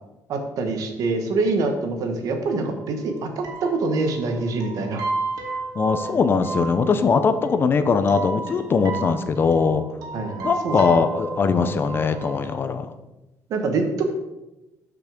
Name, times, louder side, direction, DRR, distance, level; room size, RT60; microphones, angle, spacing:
voice 1, 0.3-5.0 10.1-10.8 13.5-14.1, right 3 dB, 65° right, 5 dB, 1.9 m, -25 dB
sound 1, 2.5-2.6 2.8-2.9 3.1-3.2 3.4-12.6, right 3 dB, 90° right, 2.6 m, -33 dB
voice 2, 5.8-9.8 10.4-12.9, left 5 dB, 35° left, 10 dB, 0.8 m, -21 dB
12.5 x 6.0 x 5.2 m, 0.98 s
cardioid pair, 140°, 6 cm